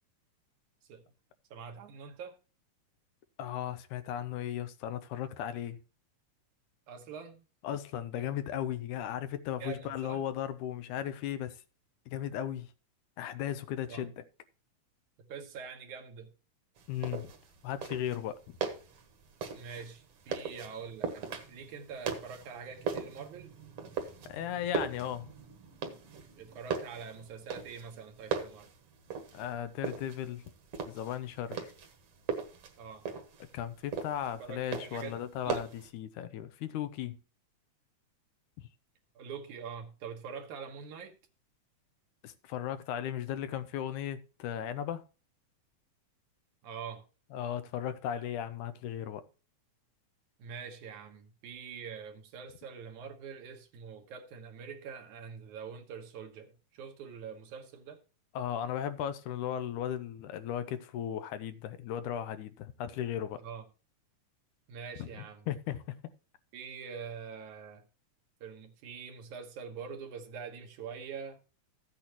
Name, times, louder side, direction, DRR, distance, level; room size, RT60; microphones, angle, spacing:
voice 1, 1.5-2.4 6.9-7.4 8.2-8.3 9.6-10.2 13.9-14.1 15.2-16.3 19.5-23.5 26.4-28.7 32.8-33.0 34.4-35.6 39.2-41.2 46.6-47.1 50.4-58.0 63.4-63.6 64.7-65.5 66.5-67.8 68.4-71.4, right 6 dB, 75° right, 2.7 m, -44 dB
voice 2, 3.4-5.8 7.6-11.6 12.1-12.7 13.2-14.2 16.9-17.3 17.6-18.4 24.2-25.3 29.3-30.4 30.9-31.7 33.5-37.2 38.6-38.7 42.2-45.0 47.3-49.2 58.4-63.4 65.0-66.0, left 10 dB, 85° left, 2.2 m, -36 dB
sound 1, 16.8-35.9, right 6 dB, 55° right, 2.1 m, -39 dB
15.0 x 8.4 x 2.9 m
omnidirectional pair, 3.5 m